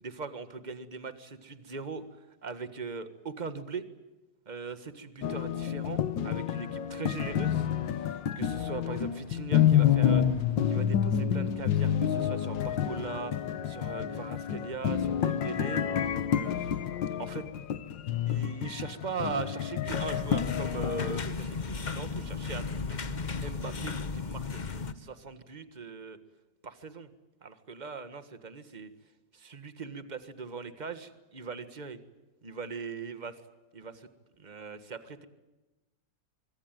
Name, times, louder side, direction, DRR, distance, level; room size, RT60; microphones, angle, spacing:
voice 1, 0.0-3.8 4.4-16.7 17.1-17.4 18.2-23.0 23.4-24.6 24.9-26.2 26.6-27.1 27.4-28.9 29.3-32.0 32.4-33.4 33.7-34.1 34.4-35.3, right 4 dB, 25° right, 11 dB, 1.6 m, -40 dB
sound 1, 5.2-21.2, left 9 dB, 75° left, 1.8 m, -29 dB
sound 2, 19.9-24.9, left 4 dB, 30° left, 0.9 m, -35 dB
25.0 x 23.0 x 9.1 m, 1.1 s
omnidirectional pair, 2.0 m